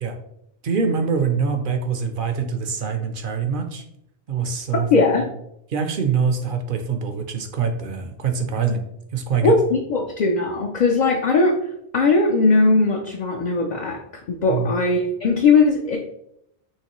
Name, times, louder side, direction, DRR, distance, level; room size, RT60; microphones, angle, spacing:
voice 1, 0.6-3.8 4.3-4.9 5.7-8.8 9.1-9.5 14.5-14.8, right 5 dB, 60° right, 7 dB, 0.7 m, -24 dB
voice 2, 4.9-5.3 9.4-11.5 11.9-14.0 14.3-16.0, left 3 dB, 50° left, 1 dB, 0.6 m, -19 dB
5.7 x 3.1 x 3.0 m, 0.76 s
omnidirectional pair, 1.1 m